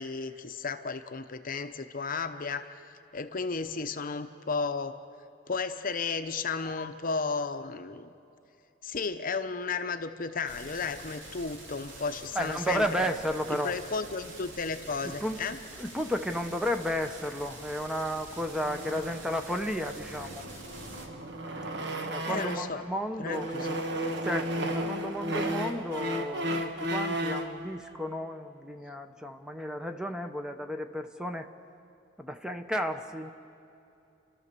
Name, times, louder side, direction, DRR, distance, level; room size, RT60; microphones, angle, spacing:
voice 1, 0.0-2.7 3.1-5.0 5.5-8.1 8.8-13.1 13.5-15.6 22.3-22.8 23.2-23.8, left 4 dB, 45° left, 9 dB, 0.8 m, -33 dB
sound 1, 10.5-21.1, right 2 dB, 80° right, 2.8 m, -46 dB
voice 2, 12.3-13.7 15.0-15.4 15.8-20.5 21.5-23.5 24.2-31.5 32.2-33.3, equal, 5° right, 6 dB, 0.8 m, -33 dB
sound 2, 18.6-22.8 23.2-27.6, right 1 dB, 65° right, 1.4 m, -34 dB
29.5 x 13.0 x 6.9 m, 2.7 s
head